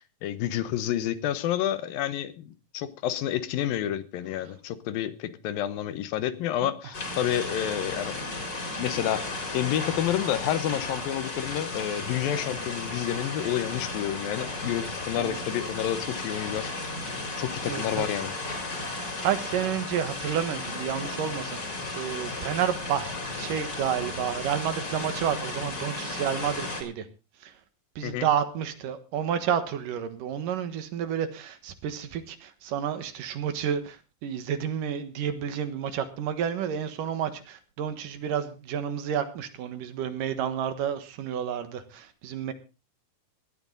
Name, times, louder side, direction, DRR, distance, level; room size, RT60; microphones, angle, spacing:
voice 1, 0.2-8.3 8.8-9.2 9.5-16.7 17.4-18.3 28.0-28.3, left 11 dB, 90° left, 13 dB, 2.8 m, -29 dB
sound 1, 6.9-26.8, left 2 dB, 30° left, 4.3 m, -34 dB
voice 2, 17.7-18.1 18.8-23.1 23.4-27.1 27.4-27.5 28.0-42.5, right 9 dB, 75° right, 10 dB, 3.0 m, -30 dB
18.0 x 12.5 x 3.9 m, 0.31 s
omnidirectional pair, 4.0 m